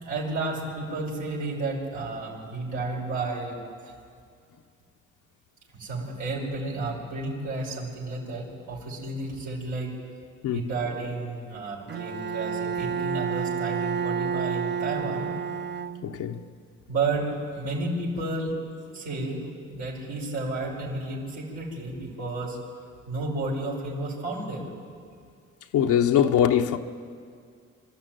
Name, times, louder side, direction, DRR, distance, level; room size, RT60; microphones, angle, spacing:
voice 1, 0.0-3.9 5.7-9.9 10.5-15.3 16.9-18.5 18.9-19.4 19.7-22.6 23.1-24.6, right 2 dB, 90° right, 5.4 m, -32 dB
Bowed string instrument, 11.9-16.4, right 6 dB, 35° right, 0.6 m, -30 dB
voice 2, 16.0-16.4 25.7-26.8, left 9 dB, 85° left, 1.0 m, -22 dB
25.0 x 13.0 x 9.2 m
cardioid pair, 90°, 30 cm